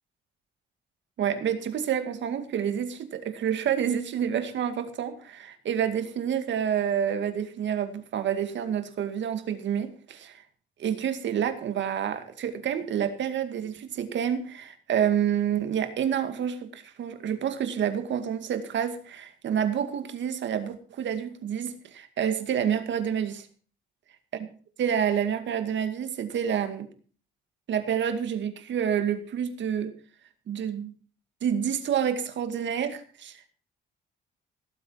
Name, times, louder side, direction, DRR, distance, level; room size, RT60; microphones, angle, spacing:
voice 1, 1.2-10.4 10.8-23.5 24.8-26.9 27.7-29.9 30.5-30.9 31.4-33.5, right 8 dB, 65° right, 9 dB, 2.2 m, -28 dB
18.0 x 7.9 x 5.8 m, 0.42 s
cardioid pair, 90°, 20 cm